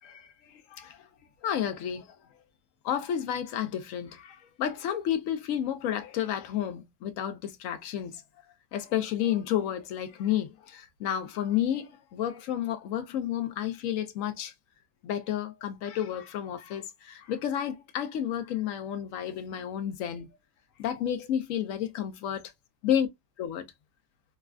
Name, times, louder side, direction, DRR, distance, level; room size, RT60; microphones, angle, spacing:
voice 1, 0.0-1.0 1.4-2.1 2.8-8.2 8.7-14.5 15.0-20.3 20.8-22.5 22.8-23.1 23.4-23.6, left 10 dB, 70° left, 0.8 m, -31 dB
3.2 x 2.3 x 2.3 m
omnidirectional pair, 1.7 m